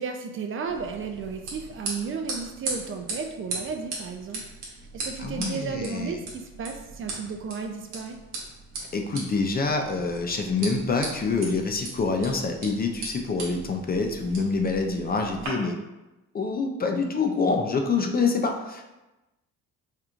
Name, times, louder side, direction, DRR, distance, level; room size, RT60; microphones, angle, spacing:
voice 1, 0.0-4.4 4.9-8.2, right 5 dB, 45° right, 5 dB, 0.4 m, -33 dB
sound 1, 0.7-15.5, right 3 dB, 90° right, 1.0 m, -38 dB
voice 2, 5.2-6.2 8.9-15.8 16.3-18.8, left 4 dB, 30° left, 3 dB, 0.4 m, -26 dB
4.3 x 2.4 x 2.4 m, 1.0 s
cardioid pair, 90°, 30 cm